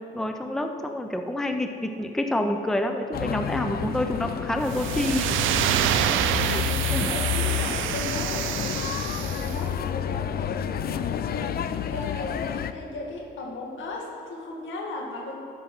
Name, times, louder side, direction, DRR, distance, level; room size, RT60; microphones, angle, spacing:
voice 1, 0.0-5.3 5.7-5.9 6.5-6.6 6.9-7.1, left 1 dB, ahead, 5 dB, 0.6 m, -28 dB
sound 1, 3.1-12.7, left 9 dB, 50° left, 0.5 m, -30 dB
sound 2, 4.7-9.6, right 11 dB, 80° right, 0.4 m, -27 dB
voice 2, 5.6-11.6 11.9-15.4, left 2 dB, 75° left, -1 dB, 1.9 m, -37 dB
11.5 x 5.3 x 6.1 m, 2.7 s
cardioid pair, 90°, 20 cm